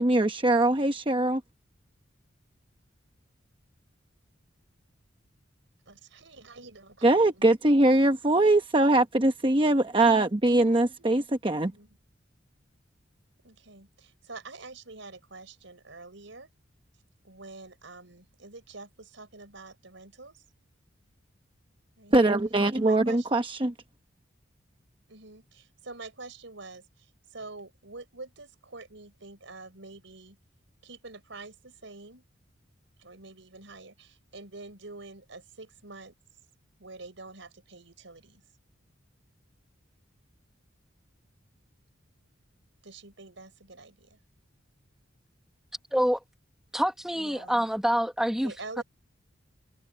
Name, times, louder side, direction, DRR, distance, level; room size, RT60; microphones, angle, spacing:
voice 1, 0.0-1.4 7.0-11.7 22.1-23.7, right 2 dB, 25° right, 0.9 m, -22 dB
voice 2, 5.9-7.5 11.0-12.0 13.4-16.5 17.2-20.4 22.0-22.2 22.7-23.3 25.1-30.4 30.8-32.2 33.0-36.1 36.8-38.4 42.8-44.2 47.1-47.7 48.3-48.8, right 3 dB, 75° right, 4.5 m, -46 dB
voice 3, 46.7-48.5 48.8-48.9, equal, ahead, 1.2 m, -26 dB
head